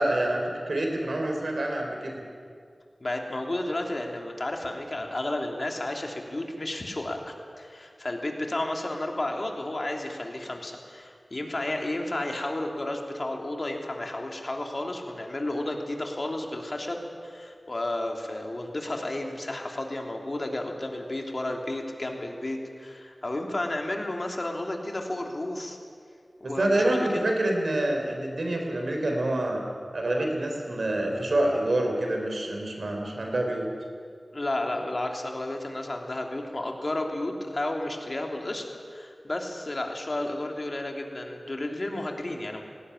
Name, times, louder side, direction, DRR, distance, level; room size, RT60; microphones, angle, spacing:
voice 1, 0.0-2.2 26.4-29.6 29.9-33.7, right 1 dB, 80° right, 2 dB, 4.1 m, -27 dB
voice 2, 3.0-25.8 26.4-27.1 34.3-42.6, left 1 dB, 50° left, 2 dB, 3.2 m, -32 dB
18.5 x 18.0 x 9.9 m, 2.3 s
wide cardioid pair, 45°, 0 cm